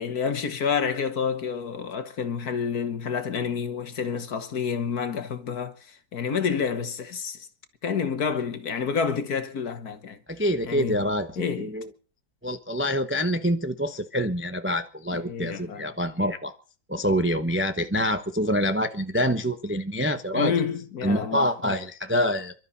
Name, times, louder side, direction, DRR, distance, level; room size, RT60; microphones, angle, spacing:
voice 1, 0.0-7.5 7.8-10.2 10.6-11.1 11.4-11.8 15.1-15.9 20.3-21.7, left 6 dB, 55° left, 1.8 m, -29 dB
voice 2, 10.3-11.3 11.6-11.9 12.4-16.5 16.9-20.5 21.0-22.5, equal, 10° right, 0.6 m, -26 dB
28.0 x 12.5 x 4.1 m
omnidirectional pair, 2.1 m